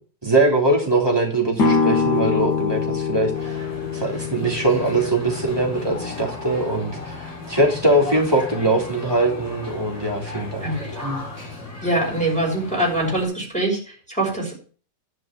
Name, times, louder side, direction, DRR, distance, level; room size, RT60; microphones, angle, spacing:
voice 1, 0.2-3.6 3.9-10.7, right 2 dB, 15° right, -1 dB, 3.2 m, -21 dB
sound 1, 1.6-7.3, left 5 dB, 80° left, 2.2 m, -25 dB
sound 2, 3.3-13.2, left 3 dB, 20° left, 6.9 m, -35 dB
voice 2, 10.6-11.2 11.8-14.5, right 1 dB, 5° left, -3 dB, 5.1 m, -24 dB
11.5 x 5.9 x 7.5 m, 0.41 s
omnidirectional pair, 1.8 m